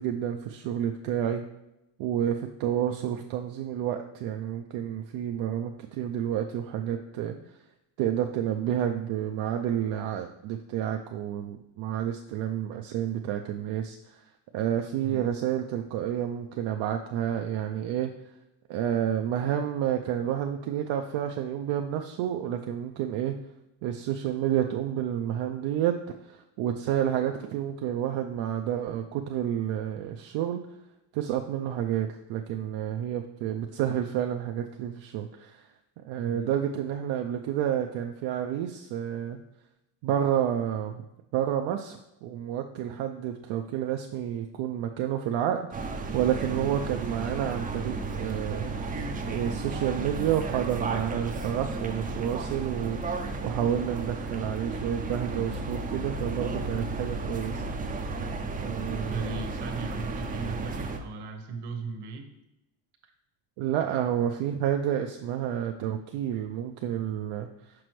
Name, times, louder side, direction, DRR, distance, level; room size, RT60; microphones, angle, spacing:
voice 1, 0.0-1.4 2.0-7.4 8.0-14.2 14.5-18.1 18.7-23.4 23.8-25.9 26.2-30.6 31.1-35.7 36.0-39.4 40.0-41.1 41.3-48.8 49.3-57.6 58.6-59.3 63.6-67.7, right 10 dB, 75° right, 4 dB, 0.6 m, -30 dB
sound 1, 45.7-61.0, right 3 dB, 20° right, 0.4 m, -33 dB
voice 2, 59.1-62.3, right 4 dB, 60° right, 5 dB, 1.1 m, -37 dB
6.1 x 5.0 x 3.1 m, 0.91 s
cardioid pair, 130°, 46 cm